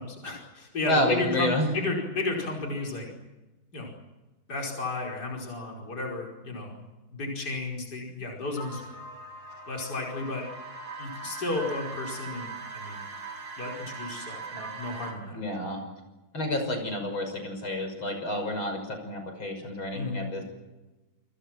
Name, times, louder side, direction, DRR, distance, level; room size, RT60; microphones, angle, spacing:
voice 1, 0.0-3.1 3.7-3.9 4.5-8.8 9.7-10.5 11.0-13.0 13.6-15.4 19.9-20.3, left 3 dB, 50° left, -1 dB, 5.7 m, -33 dB
voice 2, 0.9-1.7 15.3-15.8 16.3-20.4, left 1 dB, 85° left, 5 dB, 6.9 m, -29 dB
sound 1, 8.5-15.1, right 3 dB, 70° right, 6.2 m, -40 dB
28.5 x 26.5 x 6.0 m, 1.1 s
omnidirectional pair, 2.2 m